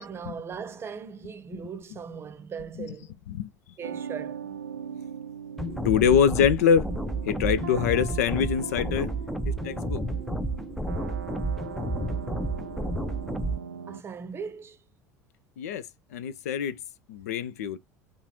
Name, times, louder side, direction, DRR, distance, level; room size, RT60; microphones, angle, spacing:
voice 1, 0.0-3.1 3.8-4.6 4.9-5.0 12.1-12.2 13.8-14.8, right 6 dB, 30° right, 0.7 m, -39 dB
sound 1, 3.8-14.0, right 7 dB, 80° right, 0.4 m, -39 dB
sound 2, 5.6-13.6, right 1 dB, 5° left, 0.5 m, -31 dB
voice 2, 5.8-6.9 7.3-9.1 9.5-10.0 15.6-15.8 16.1-16.8 17.1-17.8, left 7 dB, 65° left, 0.4 m, -24 dB
3.9 x 2.5 x 4.3 m
figure-of-eight pair, 70°, 9 cm